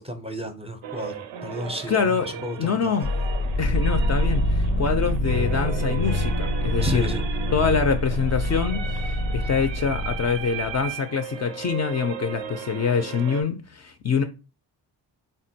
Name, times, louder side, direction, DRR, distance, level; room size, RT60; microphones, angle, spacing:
voice 1, 0.0-2.9 6.8-7.2, equal, 15° right, 0.5 m, -32 dB
sound 1, 0.8-13.4, right 9 dB, 85° right, 0.5 m, -36 dB
voice 2, 1.9-2.3 2.6-3.1 3.6-7.1 7.5-14.2, left 6 dB, 40° left, 0.4 m, -25 dB
sound 2, 3.0-10.8, left 1 dB, 90° left, 0.6 m, -25 dB
3.6 x 2.2 x 2.7 m
cardioid pair, 65°, 44 cm